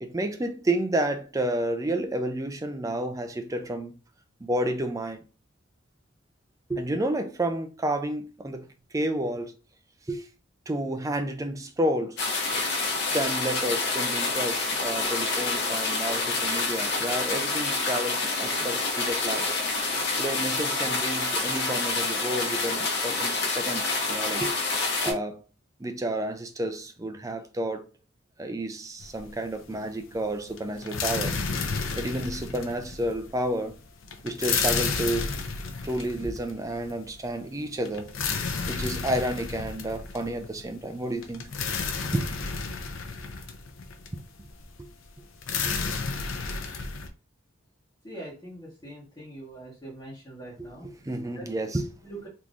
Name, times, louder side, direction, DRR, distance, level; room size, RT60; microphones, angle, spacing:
voice 1, 0.0-3.9 4.4-5.2 6.7-8.7 8.9-9.5 10.1-10.3 10.7-12.2 13.1-19.5 20.2-24.6 25.0-25.4 25.8-27.8 28.4-31.4 32.0-33.8 34.2-35.4 35.8-38.2 38.7-41.5 42.1-42.3 44.8-44.9 45.6-45.9 50.6-51.9, right 1 dB, 15° right, 0.4 m, -30 dB
sound 1, 12.2-25.1, left 3 dB, 60° left, 1.0 m, -27 dB
sound 2, 29.0-29.6 29.9-47.1, left 5 dB, 75° left, 0.6 m, -32 dB
voice 2, 48.0-50.9 51.4-51.5 52.0-52.3, right 1 dB, 20° left, 1.3 m, -42 dB
3.6 x 3.0 x 2.5 m
head